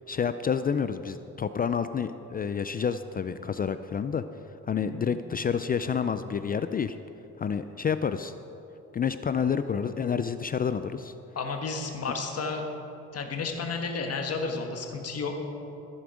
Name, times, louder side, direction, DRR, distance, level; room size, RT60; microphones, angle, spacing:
voice 1, 0.1-4.2 4.7-7.0 7.4-8.3 8.9-11.1, left 7 dB, 30° left, 11 dB, 0.4 m, -29 dB
voice 2, 11.3-12.8 13.1-15.4, left 4 dB, 55° left, 3 dB, 1.6 m, -32 dB
14.5 x 7.3 x 5.0 m, 2.9 s
cardioid pair, 90°, 30 cm